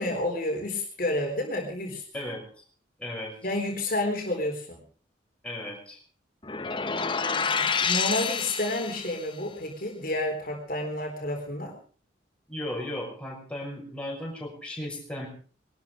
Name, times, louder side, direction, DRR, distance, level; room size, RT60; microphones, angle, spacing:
voice 1, 0.0-2.0 3.4-4.8 6.8-11.7, left 1 dB, 45° left, 2 dB, 3.9 m, -30 dB
voice 2, 2.1-2.6 3.0-3.3 5.4-6.0 12.5-15.3, left 1 dB, 5° left, -2 dB, 6.2 m, -36 dB
sound 1, 6.4-9.2, left 5 dB, 25° left, 1.1 m, -28 dB
21.0 x 13.0 x 5.1 m, 0.42 s
head